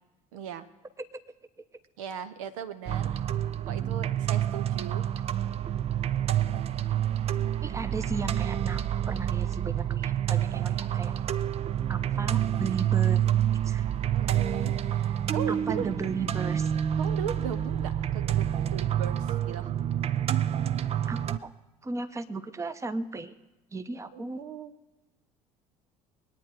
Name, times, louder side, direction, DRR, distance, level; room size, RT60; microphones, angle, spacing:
voice 1, 0.3-0.7 2.0-3.2 3.7-5.0 14.0-15.9 17.0-19.7 24.1-24.7, right 8 dB, 65° right, 12 dB, 0.8 m, -38 dB
sound 1, 2.9-21.4, right 10 dB, 35° right, 0.6 m, -28 dB
voice 2, 7.6-8.8 9.1-11.1 11.9-13.3 13.6-13.9 15.5-16.7 21.1-21.5 21.8-23.3 23.7-24.4, right 3 dB, 15° right, 11 dB, 0.9 m, -35 dB
22.0 x 9.4 x 4.9 m, 1.0 s
figure-of-eight pair, 60°, 19 cm